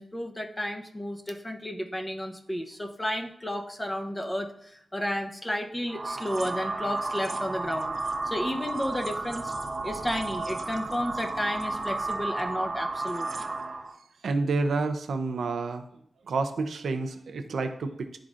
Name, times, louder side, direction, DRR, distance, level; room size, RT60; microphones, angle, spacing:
voice 1, 0.0-7.9 8.3-9.5 9.8-13.3, equal, 15° left, 4 dB, 0.7 m, -32 dB
sound 1, 5.9-13.9, right 2 dB, 40° right, 0.6 m, -33 dB
voice 2, 14.2-15.8 16.3-18.2, right 3 dB, 90° right, 7 dB, 0.6 m, -29 dB
11.0 x 3.7 x 2.5 m, 0.71 s
wide cardioid pair, 95°, 0 cm